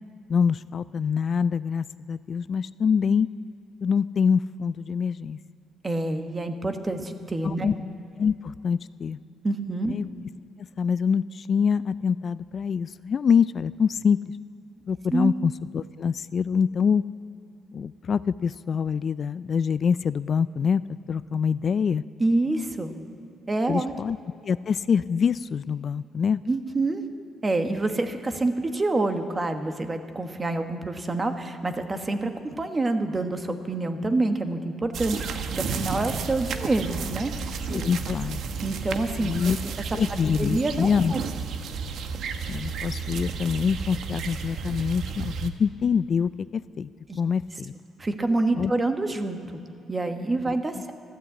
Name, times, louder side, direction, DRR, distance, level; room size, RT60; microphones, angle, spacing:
voice 1, 0.3-3.3 3.8-5.4 7.4-7.7 8.2-9.2 9.9-10.0 10.8-14.2 14.9-17.0 17.7-20.8 21.1-22.0 23.7-24.2 24.4-26.4 37.7-38.4 39.2-39.6 39.9-41.1 42.5-46.9 47.2-47.7 48.6-48.7 50.5-50.6, left 6 dB, 50° left, 16 dB, 0.3 m, -25 dB
voice 2, 5.8-7.7 9.4-9.9 15.1-15.3 22.2-22.9 23.5-23.9 26.5-27.0 27.4-37.8 38.6-39.5 40.4-41.2 47.1-47.2 48.0-49.6 49.9-50.9, right 2 dB, 25° right, 7 dB, 1.3 m, -27 dB
sound 1, 34.9-45.5, right 5 dB, 70° right, 1.0 m, -32 dB
13.5 x 11.5 x 8.3 m, 2.7 s
cardioid pair, 90°, 0 cm